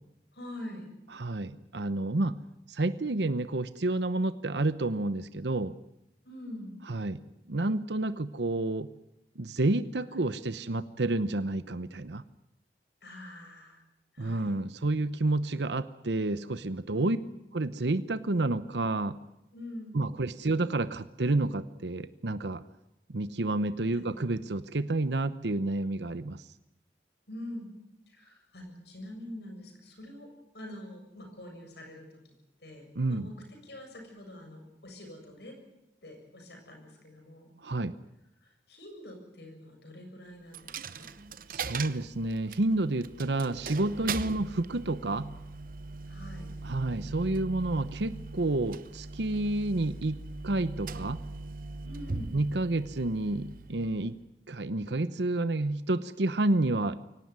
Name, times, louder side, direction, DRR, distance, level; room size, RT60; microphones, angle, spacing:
voice 1, 0.3-0.9 6.2-6.8 13.0-13.8 14.1-14.6 16.9-17.3 19.5-20.1 23.9-24.1 27.3-27.7 28.1-30.3 30.5-32.1 32.6-33.4 33.6-35.5 36.0-37.5 38.4-41.1 46.1-46.5 51.8-52.4, left 1 dB, 75° left, 4 dB, 7.4 m, -45 dB
voice 2, 1.1-2.4 2.7-5.7 6.9-7.2 7.5-8.9 9.4-12.2 14.2-17.2 17.5-19.1 19.9-22.6 23.1-26.4 33.0-33.3 37.6-37.9 41.5-45.3 46.6-50.2 50.4-51.2 52.3-54.1 54.5-57.0, right 2 dB, 80° right, 13 dB, 0.9 m, -29 dB
Coin (dropping), 40.5-54.3, right 4 dB, 50° right, 0.9 m, -40 dB
23.5 x 18.0 x 9.6 m, 0.86 s
head